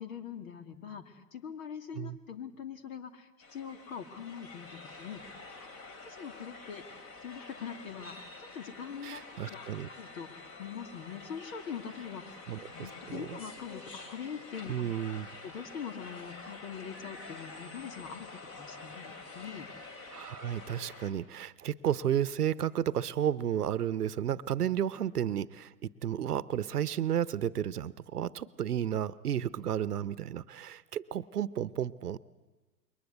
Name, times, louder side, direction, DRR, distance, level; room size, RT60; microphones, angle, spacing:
voice 1, 0.0-5.3 5.6-14.7 15.4-19.7, left 7 dB, 55° left, 9 dB, 2.6 m, -43 dB
sound 1, 3.4-21.1, left 3 dB, 25° left, 3.3 m, -48 dB
Car / Alarm, 6.3-11.8, left 4 dB, 75° left, 2.8 m, -62 dB
voice 2, 9.0-9.9 12.5-13.4 14.7-15.3 20.1-32.2, right 10 dB, 65° right, 18 dB, 1.0 m, -32 dB
28.0 x 22.5 x 8.1 m, 1.2 s
figure-of-eight pair, 110°, 49 cm